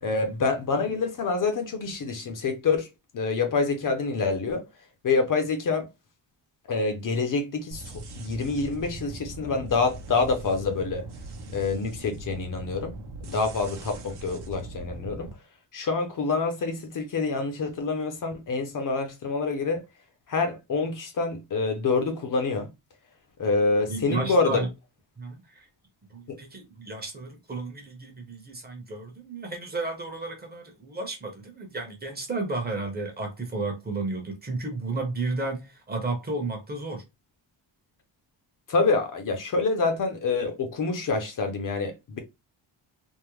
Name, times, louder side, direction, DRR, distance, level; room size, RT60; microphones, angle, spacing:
voice 1, 0.0-2.9 3.1-4.6 5.0-5.9 6.7-11.0 11.5-13.0 13.2-15.3 15.7-19.8 20.3-22.7 23.4-24.6 26.3-26.4 38.7-42.2, left 4 dB, 45° left, 0.6 m, -26 dB
sound 1, 7.7-15.3, right 2 dB, 60° right, 0.8 m, -40 dB
voice 2, 23.9-24.7 25.2-25.7 26.1-37.0, right 3 dB, 20° right, 0.8 m, -33 dB
3.5 x 2.0 x 3.0 m
wide cardioid pair, 180°, 45 cm